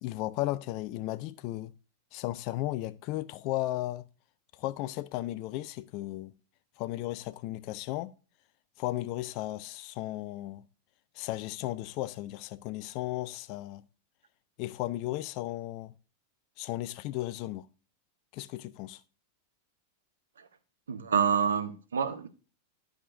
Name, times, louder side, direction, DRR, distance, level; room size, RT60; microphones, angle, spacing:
voice 1, 0.0-1.7 2.1-4.0 4.6-6.3 6.8-8.1 8.8-10.6 11.2-13.8 14.6-15.9 16.6-17.7 18.3-19.0, left 16 dB, 45° left, 0.4 m, -35 dB
voice 2, 20.9-22.3, right 7 dB, 70° right, 0.7 m, -27 dB
11.5 x 5.0 x 2.5 m
figure-of-eight pair, 90°, 0 cm